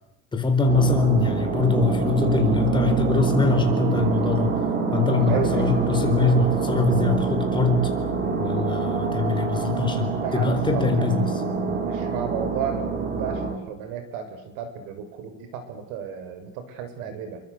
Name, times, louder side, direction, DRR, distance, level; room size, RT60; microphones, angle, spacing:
voice 1, 0.3-4.5 4.9-7.9 8.4-11.2, left 3 dB, 15° left, 5 dB, 4.3 m, -22 dB
sound 1, 0.7-13.5, right 5 dB, 30° right, 4.1 m, -26 dB
voice 2, 5.3-5.9 10.2-11.3 11.6-17.4, right 7 dB, 90° right, 9 dB, 6.4 m, -33 dB
29.5 x 24.0 x 8.2 m, 0.83 s
cardioid pair, 170°, 31 cm